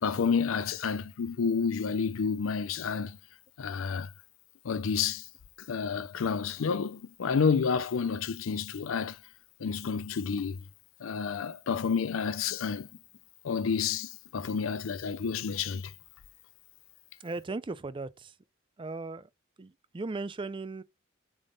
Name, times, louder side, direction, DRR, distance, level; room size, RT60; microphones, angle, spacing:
voice 1, 0.0-3.2 3.6-4.1 4.6-5.2 5.7-9.2 9.6-10.6 11.0-12.9 13.4-15.9, left 6 dB, 80° left, 0.5 m, -30 dB
voice 2, 17.2-18.4 18.8-19.3 19.6-20.8, right 3 dB, 25° right, 0.4 m, -37 dB
7.0 x 3.6 x 3.8 m
head